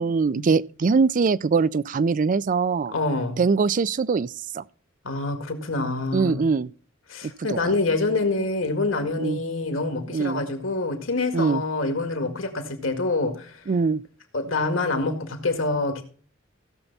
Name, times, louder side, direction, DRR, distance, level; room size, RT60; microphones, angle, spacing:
voice 1, 0.0-2.9 3.4-4.6 6.1-6.7 7.5-7.7 9.2-9.4 10.1-10.4 11.3-11.6 13.7-14.0, right 4 dB, 40° right, 0.4 m, -22 dB
voice 2, 2.9-3.4 5.0-6.4 7.1-13.6 14.3-16.0, left 3 dB, 75° left, 2.1 m, -26 dB
16.0 x 7.1 x 4.1 m
head